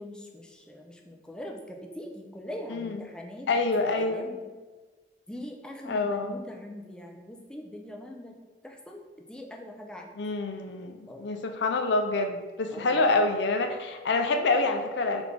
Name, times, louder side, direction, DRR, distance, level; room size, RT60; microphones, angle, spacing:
voice 1, 0.0-3.5 3.8-4.5 5.3-8.4 8.6-9.0 9.3-10.2 11.1-11.3 12.7-13.1, left 1 dB, 5° left, 1 dB, 0.3 m, -42 dB
voice 2, 2.7-3.0 3.5-4.2 5.9-6.3 10.2-15.2, left 3 dB, 70° left, 6 dB, 0.4 m, -27 dB
4.9 x 2.5 x 3.3 m, 1.3 s
head